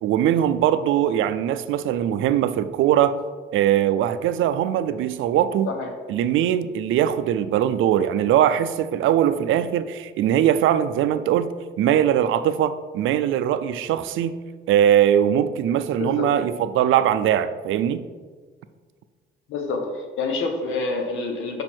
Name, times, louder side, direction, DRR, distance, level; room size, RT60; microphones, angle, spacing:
voice 1, 0.0-3.2 3.5-5.7 6.1-14.4 14.7-18.0, right 10 dB, 80° right, 12 dB, 0.5 m, -21 dB
voice 2, 16.0-16.3 19.5-21.6, left 3 dB, 80° left, 4 dB, 1.2 m, -27 dB
6.1 x 5.3 x 4.4 m, 1.5 s
cardioid pair, 90°, 20 cm